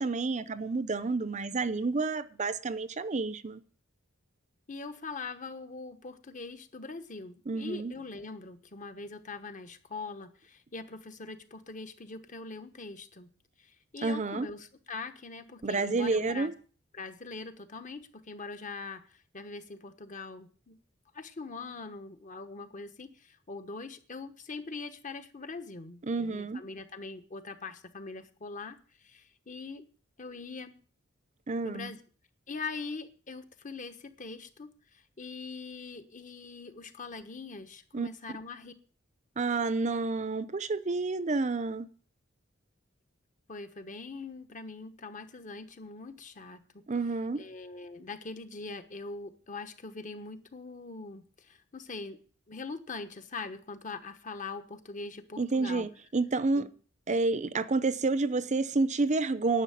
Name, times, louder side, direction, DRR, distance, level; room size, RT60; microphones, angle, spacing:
voice 1, 0.0-3.6 7.5-7.9 14.0-14.5 15.6-16.5 26.0-26.6 31.5-31.9 37.9-38.1 39.4-41.9 46.9-47.4 55.4-56.7 57.1-59.6, right 3 dB, 35° right, 0.6 m, -29 dB
voice 2, 4.7-13.3 13.6-16.5 16.9-20.8 21.1-29.9 30.2-30.8 31.6-32.0 32.5-38.7 43.5-46.8 47.4-52.2 52.5-55.8 56.6-56.7 57.5-57.6, left 3 dB, 40° left, 1.2 m, -42 dB
11.0 x 6.6 x 9.2 m
head